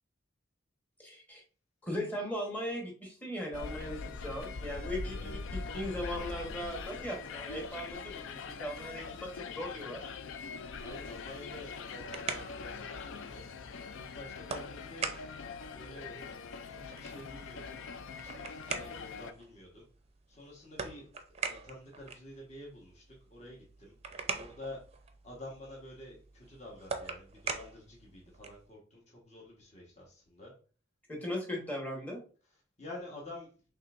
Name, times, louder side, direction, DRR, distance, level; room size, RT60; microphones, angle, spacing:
voice 1, 1.0-1.4 1.8-10.1 31.1-32.2, equal, 10° left, 0 dB, 1.2 m, -38 dB
sound 1, 3.5-19.3, left 4 dB, 70° left, 0.4 m, -42 dB
voice 2, 10.8-13.5 13.9-15.2 15.7-16.3 16.7-17.8 18.1-19.9 20.3-21.1 21.4-23.9 24.3-24.8 25.2-30.5 32.8-33.5, left 1 dB, 35° left, -3 dB, 1.3 m, -49 dB
sound 2, 11.7-28.7, right 5 dB, 30° right, 0.5 m, -44 dB
5.4 x 3.4 x 2.5 m, 0.39 s
head